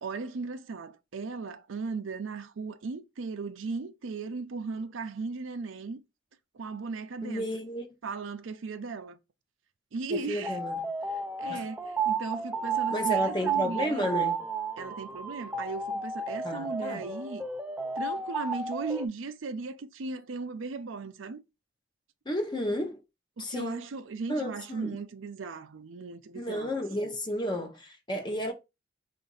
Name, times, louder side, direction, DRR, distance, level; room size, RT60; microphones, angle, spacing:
voice 1, 0.0-6.0 6.5-7.5 8.0-9.2 9.9-10.6 11.4-14.2 14.8-17.5 18.0-21.4 23.4-26.7 27.0-27.1, right 4 dB, 75° right, 0.5 m, -37 dB
voice 2, 7.2-7.9 10.1-10.9 11.5-11.6 12.9-14.4 16.4-17.1 22.3-23.0 23.4-23.8 24.3-25.0 26.3-28.5, left 1 dB, 20° left, 0.7 m, -32 dB
sound 1, 10.4-19.1, right 4 dB, 10° right, 0.4 m, -32 dB
5.0 x 2.5 x 3.8 m
head